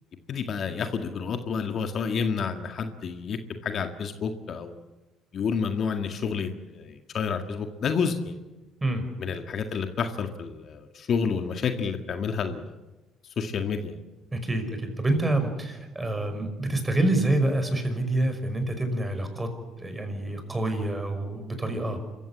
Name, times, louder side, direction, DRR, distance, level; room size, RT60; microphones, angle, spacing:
voice 1, 0.3-4.8 5.3-8.4 9.2-12.7 13.4-14.0, left 6 dB, 55° left, 6 dB, 1.9 m, -29 dB
voice 2, 14.3-19.5 19.8-22.0, right 1 dB, 15° right, 7 dB, 5.7 m, -27 dB
26.0 x 14.5 x 8.7 m, 1.1 s
supercardioid pair, 65°, 0 cm